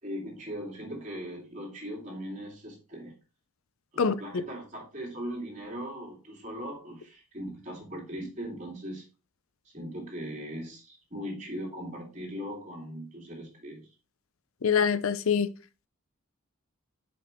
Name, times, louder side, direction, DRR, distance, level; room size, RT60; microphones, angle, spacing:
voice 1, 0.0-3.2 3.9-9.0 9.6-13.9, equal, 35° right, 2.6 m, -39 dB
voice 2, 14.6-15.5, left 6 dB, 70° left, 0.5 m, -24 dB
5.6 x 5.3 x 3.5 m
head